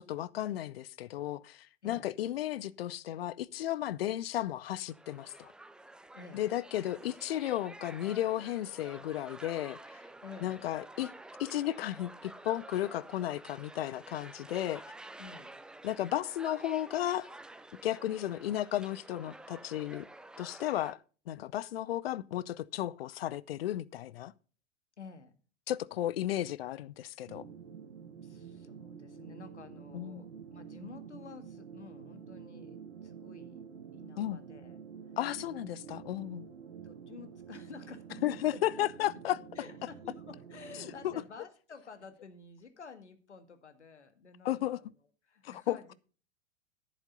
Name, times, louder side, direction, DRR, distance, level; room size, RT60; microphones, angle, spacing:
voice 1, 0.1-5.5 6.3-10.0 10.4-11.1 11.4-14.8 15.8-17.3 17.8-20.1 20.4-21.0 21.3-24.3 25.7-27.4 29.9-30.2 34.2-34.4 35.2-36.5 38.2-39.4 41.0-41.1 44.4-44.8 45.4-45.9, left 13 dB, 55° left, 0.7 m, -34 dB
voice 2, 1.8-2.2 6.1-6.5 10.2-10.7 15.2-15.6 25.0-25.4 28.2-33.6 33.9-34.8 36.8-38.6 39.6-44.9 45.3-45.9, left 5 dB, 75° left, 1.9 m, -51 dB
sound 1, 4.9-20.9, right 2 dB, ahead, 0.5 m, -50 dB
sound 2, 27.3-41.2, right 7 dB, 70° right, 1.8 m, -49 dB
11.0 x 10.5 x 3.9 m
figure-of-eight pair, 90°, 35 cm